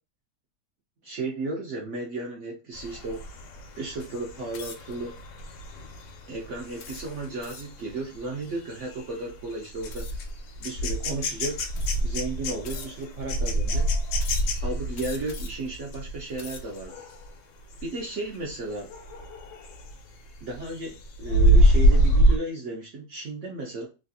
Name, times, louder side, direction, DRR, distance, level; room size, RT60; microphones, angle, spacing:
voice 1, 1.0-3.2 3.8-5.1 6.3-10.1 10.6-11.7 12.0-13.9 14.6-16.9 17.8-18.9 20.4-23.9, right 2 dB, 65° right, -1 dB, 0.7 m, -34 dB
sound 1, 2.7-17.3 17.7-18.0 18.3-20.0 20.4-22.4, right 1 dB, 85° left, 1.3 m, -26 dB
sound 2, 4.5-5.0 5.6-5.9 6.8-7.8 9.9-10.3 11.1-11.2 11.7-12.2 12.6-13.2 14.2-14.6 14.9-15.7 16.2-16.8, left 6 dB, 65° left, 0.9 m, -43 dB
3.1 x 2.4 x 2.7 m, 0.31 s
omnidirectional pair, 1.9 m